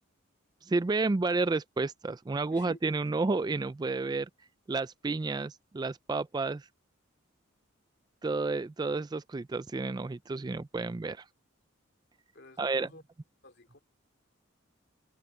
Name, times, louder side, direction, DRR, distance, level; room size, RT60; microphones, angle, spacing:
voice 1, 0.7-4.3 4.7-6.7 8.2-11.2 12.6-12.9, right 3 dB, 20° right, 0.3 m, -31 dB
voice 2, 12.3-13.0 13.4-13.8, left 2 dB, 55° left, 2.6 m, -51 dB
head